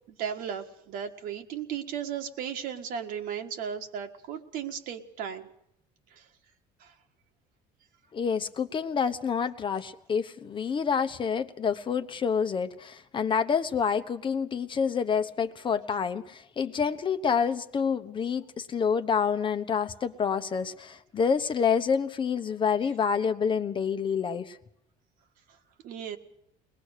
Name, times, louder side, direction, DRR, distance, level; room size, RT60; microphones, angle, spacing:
voice 1, 0.1-5.5 6.2-6.3 6.8-6.9 25.8-26.2, right 8 dB, 70° right, 5 dB, 1.8 m, -35 dB
voice 2, 8.1-24.6, left 6 dB, 35° left, 9 dB, 1.0 m, -28 dB
21.0 x 20.0 x 6.6 m, 0.78 s
cardioid pair, 115°, 15 cm